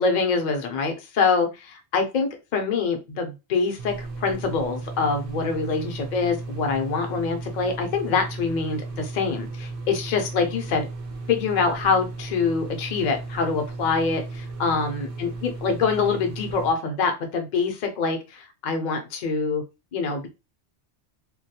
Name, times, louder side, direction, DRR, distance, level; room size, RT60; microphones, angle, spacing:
voice 1, 0.0-10.9 11.3-19.6 19.9-20.3, left 4 dB, 50° left, 5 dB, 0.6 m, -25 dB
sound 1, 3.8-16.7, right 3 dB, 60° right, 0.7 m, -35 dB
2.2 x 2.2 x 2.7 m, 0.27 s
omnidirectional pair, 1.1 m